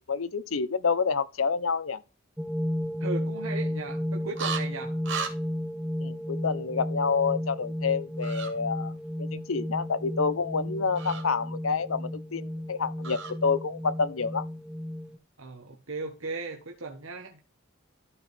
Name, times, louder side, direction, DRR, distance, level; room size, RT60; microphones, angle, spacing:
voice 1, 0.1-2.0 6.0-8.9 9.2-14.4, left 5 dB, 90° left, 0.8 m, -28 dB
sound 1, 2.4-15.2, equal, 5° right, 0.5 m, -33 dB
voice 2, 3.0-5.0 15.4-17.4, right 3 dB, 90° right, 1.5 m, -37 dB
sound 2, 4.4-4.6 5.0-5.3 8.2-8.5 10.9-11.2 13.0-13.3, right 5 dB, 65° right, 2.6 m, -33 dB
13.0 x 4.8 x 3.4 m
head